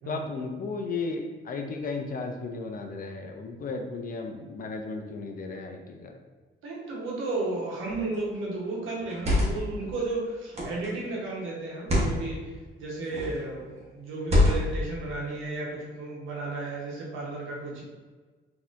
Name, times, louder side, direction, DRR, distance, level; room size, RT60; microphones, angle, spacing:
voice 1, 0.0-6.1, left 3 dB, 45° left, 3 dB, 0.5 m, -34 dB
voice 2, 6.6-12.5 12.8-17.8, right 2 dB, 85° right, -3 dB, 1.0 m, -33 dB
sound 1, 7.8-8.2 9.0-9.7 10.5-10.9 11.7-12.2 13.1-13.4 14.2-14.8, left 1 dB, 30° right, 1.1 m, -25 dB
3.9 x 2.8 x 2.5 m, 1.4 s
cardioid pair, 90°, 20 cm